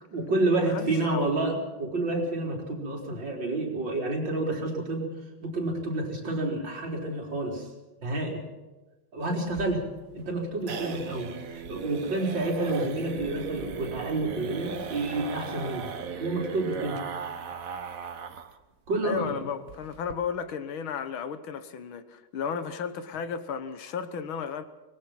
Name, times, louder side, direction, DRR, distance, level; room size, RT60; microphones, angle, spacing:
voice 1, 0.1-5.1 5.4-7.7 8.0-8.4 9.1-9.8 10.1-17.0 18.9-19.5, right 2 dB, 65° right, 4.9 m, -29 dB
voice 2, 0.6-1.3 19.0-24.6, left 6 dB, 80° left, 2.0 m, -34 dB
sound 1, 9.5-18.6 18.9-19.0 19.3-19.4 19.7-20.1, right 6 dB, 45° right, 1.5 m, -37 dB
24.5 x 20.5 x 5.9 m
omnidirectional pair, 2.2 m